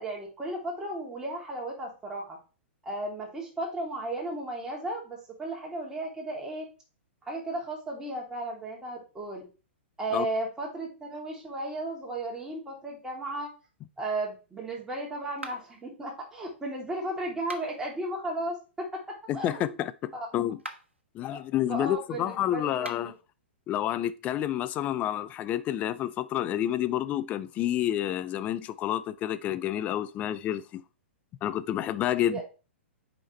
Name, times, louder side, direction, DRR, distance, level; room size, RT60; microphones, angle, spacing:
voice 1, 0.0-2.4 2.8-6.6 7.3-9.4 10.0-13.5 14.0-18.6 19.3-19.7 20.1-20.3 21.7-23.1 32.3-32.4, right 2 dB, 10° right, 2.9 m, -34 dB
sound 1, 15.4-15.9 17.3-17.9 20.5-21.0 22.7-23.2, right 1 dB, 85° right, 1.1 m, -43 dB
voice 2, 19.3-20.6 21.1-23.1 23.7-30.8 31.4-32.4, left 12 dB, 25° left, 0.4 m, -29 dB
8.6 x 5.1 x 3.2 m
figure-of-eight pair, 110°, 6 cm